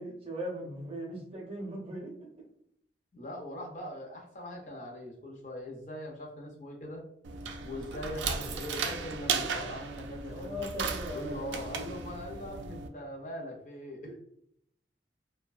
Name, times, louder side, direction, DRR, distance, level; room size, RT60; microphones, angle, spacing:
voice 1, 0.0-2.1 10.3-11.4 14.0-14.2, equal, 30° right, 0 dB, 0.5 m, -39 dB
voice 2, 3.1-7.0 7.6-10.6 11.1-14.2, equal, 45° left, -1 dB, 0.6 m, -41 dB
sound 1, 7.2-12.9, right 5 dB, 85° right, 0.3 m, -36 dB
2.5 x 2.1 x 2.4 m, 0.72 s
head